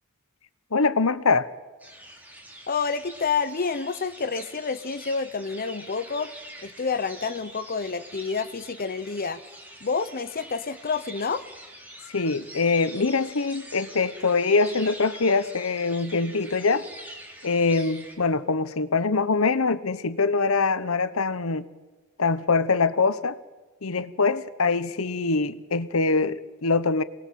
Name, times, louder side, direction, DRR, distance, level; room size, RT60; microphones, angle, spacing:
voice 1, 0.7-1.5 12.1-16.9 17.4-21.7 22.2-23.4 23.8-27.0, left 4 dB, 70° left, 14 dB, 1.0 m, -23 dB
sound 1, 1.8-18.1, right 1 dB, 10° right, 4.4 m, -45 dB
voice 2, 2.7-6.3 6.6-9.4 9.8-11.4, left 5 dB, 45° left, 10 dB, 0.9 m, -28 dB
28.0 x 20.0 x 7.6 m, 1.2 s
head